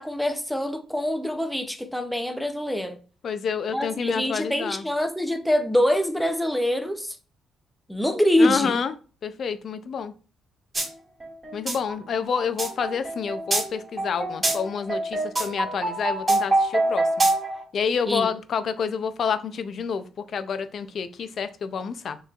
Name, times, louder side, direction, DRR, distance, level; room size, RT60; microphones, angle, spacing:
voice 1, 0.0-3.0 3.7-7.2 7.9-8.8 18.1-18.3, left 1 dB, 5° left, 0.7 m, -24 dB
voice 2, 3.2-4.8 8.4-8.9 9.2-10.1 11.5-17.3 17.7-22.2, left 6 dB, 55° left, 0.5 m, -28 dB
sound 1, 10.7-10.9 11.2-17.6, right 2 dB, 30° right, 1.9 m, -25 dB
6.6 x 3.1 x 2.4 m
cardioid pair, 90°, 0 cm